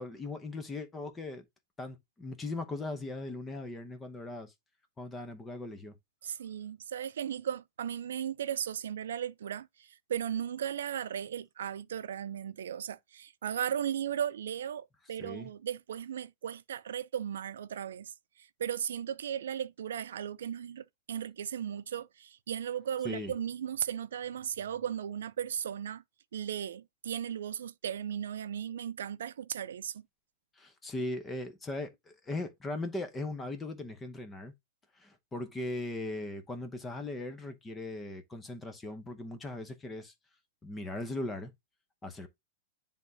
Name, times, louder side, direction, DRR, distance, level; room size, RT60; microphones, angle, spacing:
voice 1, 0.0-1.4 1.8-4.5 5.0-5.9 15.2-15.5 23.0-23.3 30.6-34.5 35.0-40.1 40.6-41.5 42.0-42.3, left 2 dB, 10° left, 0.7 m, -39 dB
voice 2, 6.2-26.0 26.3-30.0, right 9 dB, 90° right, 0.5 m, -36 dB
9.9 x 3.5 x 2.7 m
supercardioid pair, 165°, 0 cm